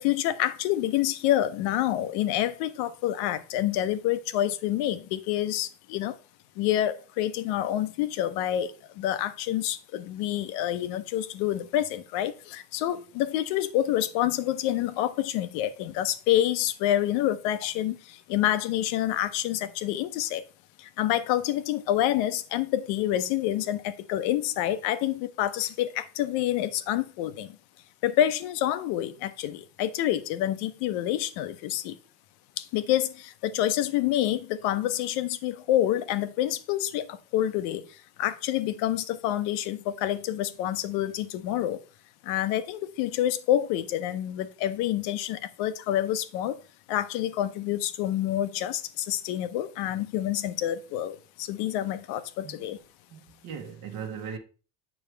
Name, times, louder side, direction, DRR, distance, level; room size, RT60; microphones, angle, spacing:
voice 1, 0.0-6.2 6.6-20.4 20.8-27.6 28.0-32.0 32.6-41.8 42.2-46.6 46.9-52.8, left 12 dB, 70° left, 0.8 m, -27 dB
voice 2, 53.1-54.4, right 7 dB, 55° right, 1.1 m, -38 dB
7.2 x 6.1 x 3.3 m
cardioid pair, 160°, 41 cm